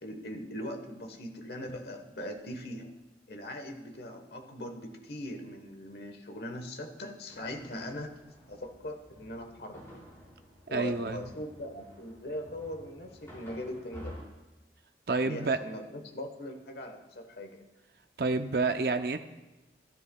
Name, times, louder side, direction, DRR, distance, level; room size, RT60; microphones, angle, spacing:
voice 1, 0.0-3.0 3.3-8.2 8.5-9.9 10.7-14.2 15.2-17.7, left 1 dB, 65° left, 5 dB, 1.2 m, -40 dB
sound 1, 7.3-14.2, left 1 dB, 15° left, 4.3 m, -51 dB
voice 2, 10.7-11.2 15.1-15.6 18.2-19.2, right 3 dB, 60° right, 8 dB, 0.6 m, -28 dB
13.5 x 13.0 x 2.3 m, 1.0 s
head